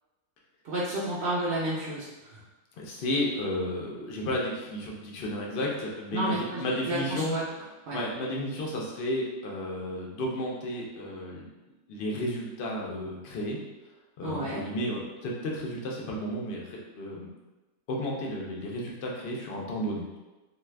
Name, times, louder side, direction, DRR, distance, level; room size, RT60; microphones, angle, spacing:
voice 1, 0.6-2.4 6.1-7.4 7.9-8.0 14.2-14.6, right 1 dB, 60° right, -8 dB, 0.7 m, -31 dB
voice 2, 2.8-7.4 7.9-11.5 11.9-13.6 14.2-17.3 17.9-20.2, left 1 dB, 60° left, -2 dB, 0.6 m, -32 dB
2.6 x 2.4 x 3.2 m, 1.1 s
omnidirectional pair, 1.6 m